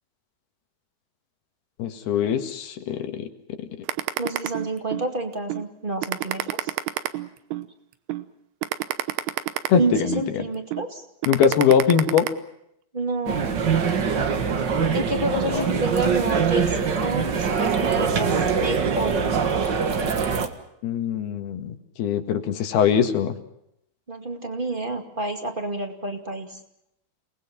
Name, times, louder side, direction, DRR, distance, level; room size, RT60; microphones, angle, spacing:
voice 1, 1.8-3.3 3.6-3.7 9.7-10.4 11.3-12.3 14.7-14.9 15.5-15.6 20.8-23.3, left 7 dB, 80° left, 7 dB, 3.7 m, -22 dB
sound 1, 3.9-5.1 5.5-5.6 6.0-7.7 8.1-8.2 8.6-10.3 10.7-10.9 11.2-12.3, right 15 dB, 90° right, 3.1 m, -27 dB
voice 2, 4.2-6.7 9.8-11.0 12.9-13.7 14.9-19.3 24.1-26.6, right 2 dB, 20° right, 5 dB, 1.5 m, -29 dB
sound 2, 13.3-20.5, right 6 dB, 60° right, 1.1 m, -23 dB
29.5 x 20.0 x 6.0 m, 0.76 s
omnidirectional pair, 4.5 m